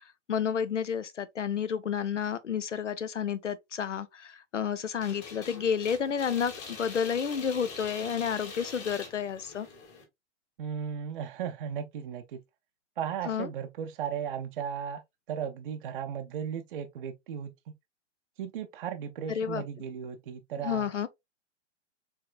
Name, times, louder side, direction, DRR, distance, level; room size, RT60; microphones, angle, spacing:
voice 1, 0.0-9.7 13.3-13.5 19.3-19.6 20.6-21.1, left 7 dB, 80° left, 0.7 m, -31 dB
sound 1, 5.0-10.0, left 4 dB, 30° left, 1.8 m, -44 dB
voice 2, 10.6-12.4 13.0-15.0 15.3-17.5 18.4-20.9, right 8 dB, 50° right, 0.5 m, -36 dB
4.5 x 3.5 x 2.3 m
figure-of-eight pair, 110°, 36 cm